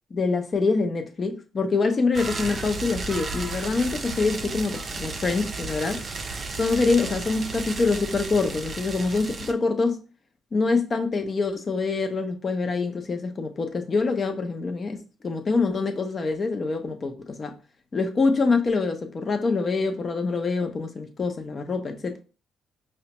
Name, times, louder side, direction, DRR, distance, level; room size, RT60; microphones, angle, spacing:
voice 1, 0.1-6.0 6.5-10.0 10.5-17.6 17.9-22.2, left 4 dB, 40° left, 0.6 m, -25 dB
sound 1, 2.1-9.5, right 3 dB, 40° right, 0.5 m, -33 dB
4.8 x 2.2 x 2.9 m
cardioid pair, 90°, 0 cm